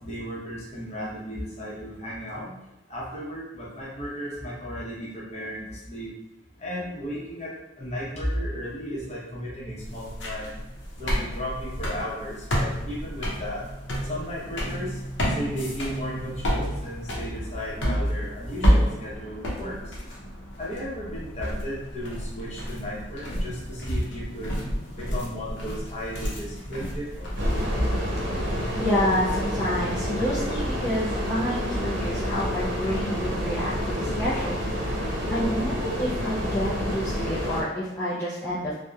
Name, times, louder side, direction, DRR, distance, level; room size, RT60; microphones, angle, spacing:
voice 1, 0.0-2.6 2.9-6.1 6.6-10.7 11.0-13.6 14.0-15.0 15.3-20.0 20.6-24.6 24.9-27.4, equal, 35° left, -6 dB, 0.7 m, -34 dB
sound 1, 9.8-28.2, equal, 70° left, 0.6 m, -30 dB
sound 2, 27.4-37.6, equal, 80° right, 0.7 m, -28 dB
voice 2, 28.8-38.7, left 1 dB, 15° left, -10 dB, 0.3 m, -29 dB
2.8 x 2.1 x 2.3 m, 0.99 s
head